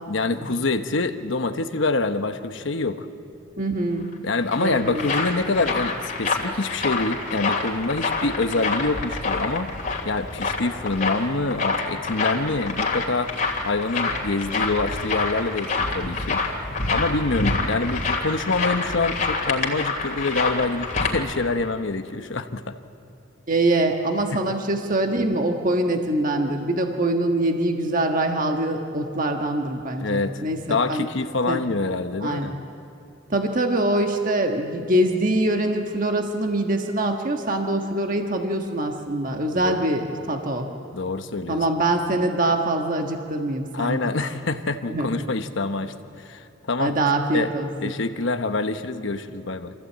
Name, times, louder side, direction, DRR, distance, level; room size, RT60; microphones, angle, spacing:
voice 1, 0.1-3.1 4.2-9.7 10.0-13.3 13.6-16.4 16.9-22.7 24.3-24.4 30.0-32.5 39.5-39.8 40.9-41.6 43.7-46.9 47.3-47.5 47.8-49.7, left 3 dB, 70° left, 8 dB, 1.0 m, -26 dB
voice 2, 3.6-4.0 4.6-5.1 23.5-31.1 31.5-31.6 32.2-32.5 33.3-40.7 41.5-44.0 44.9-45.2 46.8-47.9, right 1 dB, 45° right, 3 dB, 1.4 m, -24 dB
sound 1, 4.1-21.1, left 3 dB, 40° left, 2.8 m, -27 dB
26.5 x 15.0 x 8.6 m, 2.5 s
head